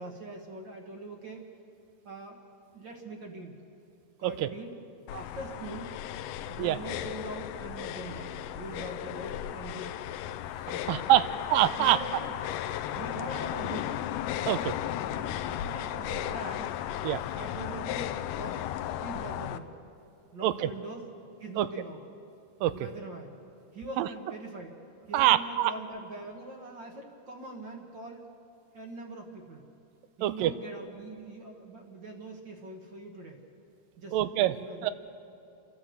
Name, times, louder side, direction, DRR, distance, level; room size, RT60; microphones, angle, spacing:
voice 1, 0.0-1.4 2.0-2.4 2.7-3.6 4.2-4.7 5.1-5.9 6.5-10.0 10.7-11.3 11.8-12.3 12.9-14.1 14.4-14.8 15.1-16.7 17.3-18.7 19.0-19.8 20.3-21.1 21.4-22.0 22.7-23.3 23.7-24.7 25.1-28.3 28.7-29.6 30.2-33.4 34.0-34.9, right 2 dB, 45° right, 3 dB, 1.6 m, -42 dB
sound 1, 5.1-19.6, left 12 dB, 80° left, 2.1 m, -35 dB
voice 2, 10.9-12.0 14.5-14.7 17.0-17.2 20.4-20.7 21.6-21.7 22.6-22.8 24.0-24.1 25.1-25.7 30.2-30.5 34.1-34.6 34.8-34.9, right 13 dB, 90° right, 14 dB, 2.4 m, -25 dB
29.0 x 12.0 x 7.9 m, 2.6 s
omnidirectional pair, 3.9 m